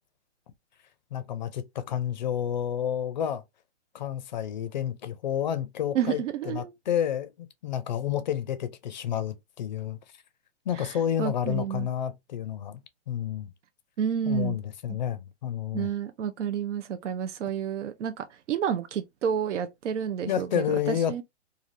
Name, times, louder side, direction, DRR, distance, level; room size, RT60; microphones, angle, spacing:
voice 1, 1.1-3.4 3.9-10.0 10.7-12.8 13.1-13.5 14.3-15.9 20.3-21.2, left 10 dB, 40° left, 0.4 m, -30 dB
voice 2, 5.9-6.7 10.8-10.9 11.2-11.9 14.0-14.6 15.7-21.2, right 8 dB, 90° right, 0.5 m, -30 dB
3.3 x 2.4 x 2.5 m
hypercardioid pair, 150°, 35 cm